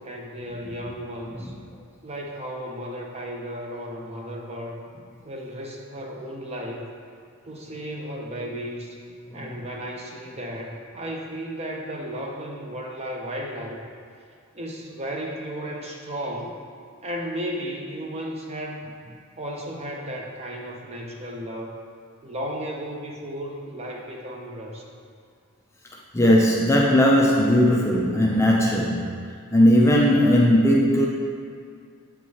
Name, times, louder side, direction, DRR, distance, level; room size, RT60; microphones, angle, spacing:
voice 1, 0.0-1.5 2.0-4.8 5.2-6.9 7.4-9.0 9.3-13.9 14.5-16.6 17.0-18.8 19.4-21.8 22.2-24.9, equal, 30° right, 0 dB, 0.6 m, -34 dB
voice 2, 26.1-29.2 29.5-31.1, equal, 10° left, -2 dB, 0.4 m, -18 dB
8.0 x 4.6 x 2.8 m, 2.2 s
head